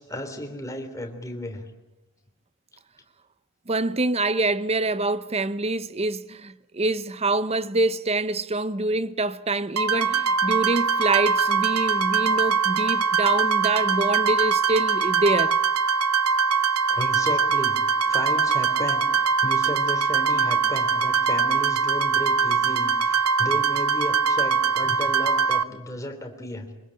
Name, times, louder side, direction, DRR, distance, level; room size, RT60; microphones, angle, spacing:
voice 1, 0.0-1.7 16.9-17.8 18.0-26.7, left 1 dB, 15° left, 3.3 m, -34 dB
voice 2, 3.7-15.6, right 2 dB, 30° right, 0.8 m, -25 dB
sound 1, 9.8-25.6, right 5 dB, 85° right, 0.9 m, -22 dB
24.5 x 21.0 x 8.8 m
head